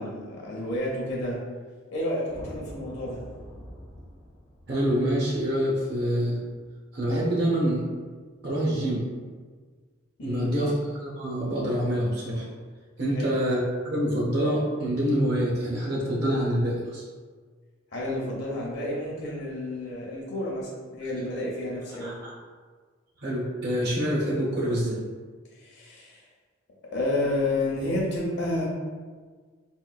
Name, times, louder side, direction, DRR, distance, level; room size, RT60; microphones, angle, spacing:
voice 1, 0.0-1.4 1.9-3.3 10.2-10.5 13.1-13.3 17.9-22.2 25.6-26.2 26.9-28.7, left 1 dB, 55° left, -4 dB, 0.6 m, -30 dB
sound 1, 2.3-6.7, equal, 15° left, 0.3 m, -45 dB
voice 2, 4.7-6.4 6.9-7.8 8.4-9.1 10.2-12.5 13.0-17.0 22.0-22.3 23.2-25.0, equal, 55° right, -5 dB, 0.6 m, -26 dB
3.7 x 2.2 x 2.3 m, 1.5 s
head